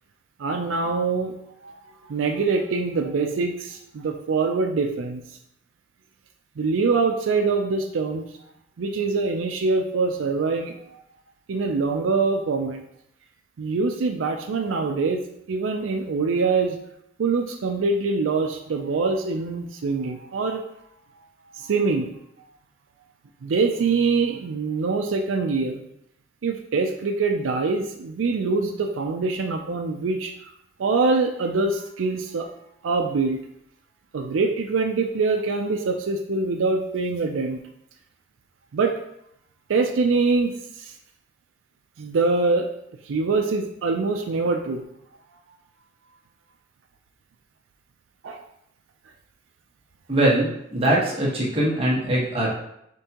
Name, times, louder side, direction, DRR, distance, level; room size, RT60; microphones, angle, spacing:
voice 1, 0.4-1.3 1.6-5.2 6.6-8.2 8.8-11.0 11.5-12.8 13.6-15.2 15.5-16.8 17.2-20.6 21.5-22.1 23.4-25.8 26.4-30.3 30.8-32.5 32.8-33.4 34.1-37.6 38.7-39.0 39.7-40.9 42.0-42.7 43.0-44.8 48.2-48.4, right 4 dB, 85° right, 4 dB, 0.4 m, -24 dB
voice 2, 50.1-52.5, right 1 dB, 30° right, -5 dB, 1.3 m, -22 dB
5.3 x 3.5 x 2.9 m, 0.77 s
head